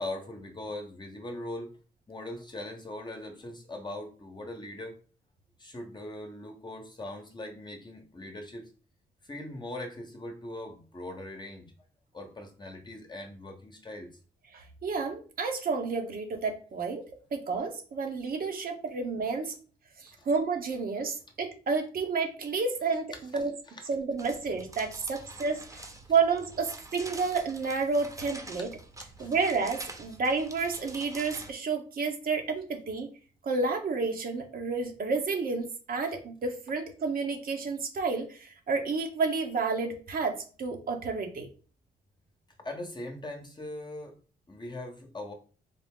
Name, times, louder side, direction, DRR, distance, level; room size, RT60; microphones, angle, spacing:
voice 1, 0.0-1.7 2.1-5.0 5.6-8.7 9.2-11.7 12.1-14.1 20.2-20.3 23.3-23.8 29.2-29.3 42.6-44.2 44.5-45.3, left 1 dB, 25° left, 3 dB, 0.9 m, -40 dB
voice 2, 14.5-17.0 17.3-19.5 20.0-23.1 23.3-23.5 23.9-25.6 26.1-28.7 29.2-33.1 33.4-40.3 40.6-41.5, right 4 dB, 55° right, 3 dB, 1.0 m, -30 dB
sound 1, 24.2-31.5, right 2 dB, 20° right, 0.9 m, -46 dB
4.0 x 2.0 x 3.7 m, 0.38 s
cardioid pair, 70°, 17 cm